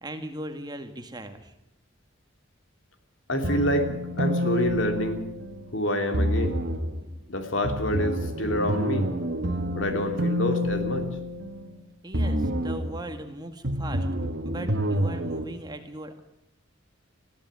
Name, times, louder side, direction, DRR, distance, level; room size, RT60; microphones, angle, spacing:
voice 1, 0.0-1.5 12.0-14.1 14.4-16.2, right 1 dB, 20° right, 6 dB, 1.9 m, -38 dB
voice 2, 3.3-3.9 4.2-5.3 5.7-6.6 7.3-9.1 9.7-11.1, equal, 65° left, 6 dB, 2.9 m, -27 dB
sound 1, 3.4-5.7 6.1-7.0 7.6-11.8 12.1-13.0 13.6-15.4, equal, 55° right, 1.8 m, -28 dB
20.5 x 14.5 x 9.5 m, 0.82 s
head